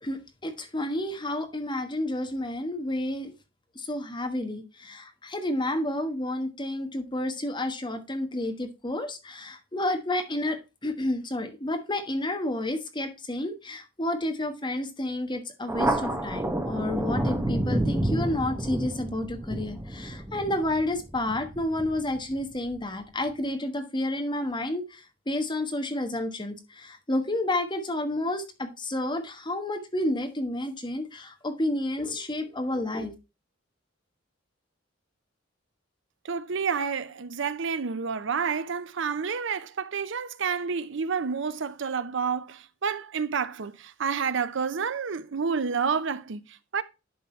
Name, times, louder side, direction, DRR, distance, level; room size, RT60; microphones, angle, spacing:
voice 1, 0.0-3.3 3.7-33.1, left 1 dB, 25° left, 1.4 m, -30 dB
Thunder, 15.7-22.7, right 1 dB, 10° right, 1.2 m, -30 dB
voice 2, 36.2-46.8, right 6 dB, 65° right, 0.6 m, -29 dB
11.0 x 3.9 x 4.4 m
head